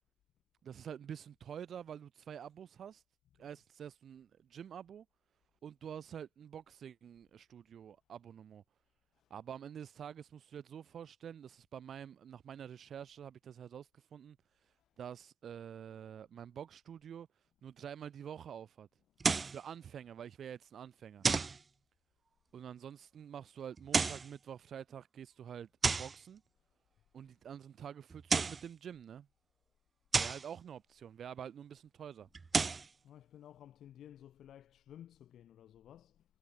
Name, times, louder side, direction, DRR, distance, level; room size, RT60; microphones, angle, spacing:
voice 1, 0.6-3.0 3.4-5.0 5.6-8.6 9.3-18.9 19.4-21.2 22.5-26.4 27.1-29.3 30.2-32.3, right 8 dB, 40° right, 1.7 m, -48 dB
sound 1, 19.2-19.6 21.2-21.6 23.8-24.3 25.8-26.2 28.1-28.7 30.1-30.5 32.3-32.9, right 4 dB, 20° right, 0.4 m, -31 dB
voice 2, 33.0-36.2, left 11 dB, 45° left, 5.1 m, -55 dB
hypercardioid pair, 75°, 0 cm